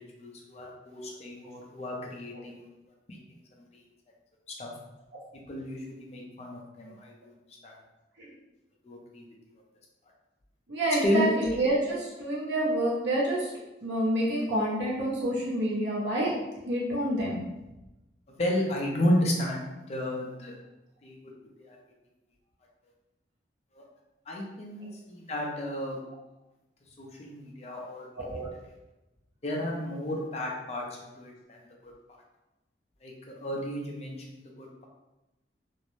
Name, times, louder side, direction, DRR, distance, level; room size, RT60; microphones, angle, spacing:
voice 1, 0.2-2.7 3.1-3.2 4.6-4.7 5.5-7.3 7.6-7.8 8.8-9.2 11.0-11.3 18.4-20.6 21.0-21.2 21.6-21.8 23.7-23.8 24.3-26.0 27.0-28.1 29.4-30.8 31.2-31.6 31.8-31.9 33.0-34.9, left 1 dB, 35° left, -1 dB, 0.4 m, -32 dB
voice 2, 10.7-13.5 13.8-16.3 16.7-17.4 28.2-28.5, right 1 dB, 80° right, -6 dB, 0.9 m, -28 dB
2.5 x 2.0 x 3.0 m, 1.0 s
head